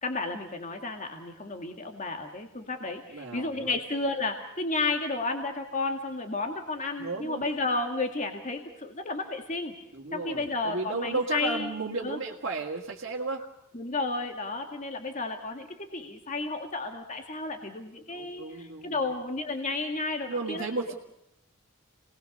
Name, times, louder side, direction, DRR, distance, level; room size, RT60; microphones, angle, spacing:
voice 1, 0.0-9.8 10.1-12.2 13.7-20.7, left 3 dB, 35° left, 4 dB, 2.1 m, -32 dB
voice 2, 3.1-3.8 7.0-7.4 9.9-13.4 18.1-18.9 20.3-20.9, right 3 dB, 60° right, -4 dB, 2.2 m, -34 dB
29.0 x 20.0 x 6.6 m, 0.85 s
head